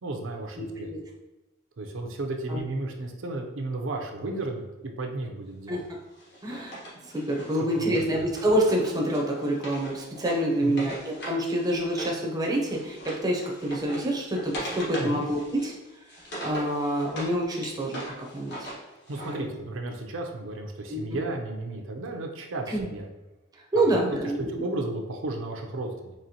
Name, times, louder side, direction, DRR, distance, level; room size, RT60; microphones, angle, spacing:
voice 1, 0.0-0.9 1.8-4.7 5.0-5.8 7.8-8.0 10.6-10.9 15.0-15.2 19.1-23.0 23.9-24.0 24.4-26.1, right 2 dB, 75° right, 2 dB, 0.6 m, -33 dB
voice 2, 0.5-1.0 2.5-2.6 5.7-5.8 6.4-6.8 7.1-15.7 16.4-18.7 19.2-19.5 20.9-21.2 22.7-22.9 23.7-24.6, right 1 dB, 20° right, -1 dB, 0.6 m, -27 dB
Wood, 6.2-12.2 12.5-17.3 17.6-19.4, right 1 dB, 55° left, 1.3 m, -40 dB
4.2 x 3.0 x 2.8 m, 1.1 s
head